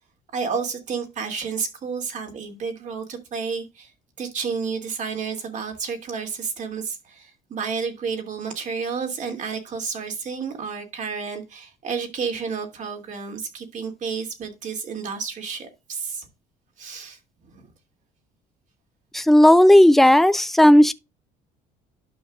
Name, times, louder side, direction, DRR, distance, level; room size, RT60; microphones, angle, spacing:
voice 1, 0.3-3.9 4.2-16.3 16.8-17.2 17.5-17.7, right 5 dB, 45° right, 2.7 m, -31 dB
voice 2, 19.1-20.9, left 1 dB, ahead, 0.5 m, -13 dB
12.0 x 5.7 x 2.5 m
cardioid pair, 100°, 17 cm